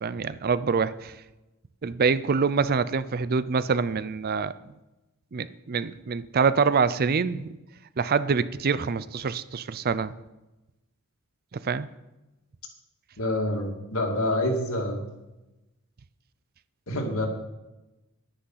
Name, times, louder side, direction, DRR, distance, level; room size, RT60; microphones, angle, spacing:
voice 1, 0.0-1.1 1.8-4.5 5.3-7.6 8.0-10.1 11.5-11.9, right 5 dB, 45° right, 16 dB, 0.4 m, -25 dB
voice 2, 13.2-15.0 16.9-17.3, left 1 dB, 70° left, 2 dB, 2.3 m, -27 dB
10.5 x 10.0 x 5.7 m, 1.0 s
head